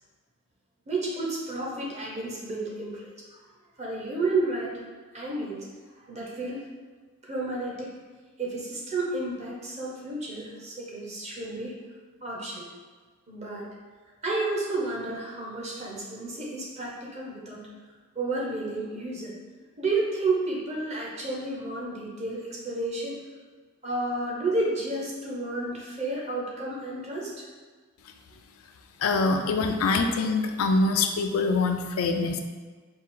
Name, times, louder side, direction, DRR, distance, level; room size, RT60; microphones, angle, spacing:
voice 1, 0.9-3.0 3.3-3.4 3.8-4.7 5.1-5.7 6.1-6.6 7.2-7.9 8.4-11.7 12.2-12.7 13.3-13.7 14.2-17.7 18.1-19.3 19.8-23.2 23.8-27.4, right 2 dB, 30° right, -4 dB, 0.8 m, -31 dB
voice 2, 29.0-32.4, left 3 dB, 75° left, 5 dB, 0.4 m, -24 dB
4.3 x 2.4 x 3.7 m, 1.4 s
head